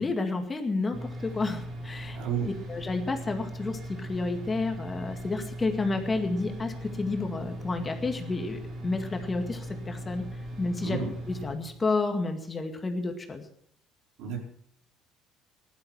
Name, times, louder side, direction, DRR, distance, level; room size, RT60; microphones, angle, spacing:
voice 1, 0.0-10.2 10.6-11.0 11.3-13.5, left 3 dB, 25° left, 5 dB, 2.1 m, -30 dB
sound 1, 0.9-11.6, equal, 50° right, 4.4 m, -39 dB
voice 2, 2.1-2.5 10.8-11.1 14.2-14.4, right 6 dB, 75° right, 0 dB, 4.4 m, -31 dB
15.5 x 11.5 x 5.8 m, 0.66 s
cardioid pair, 100°, 0 cm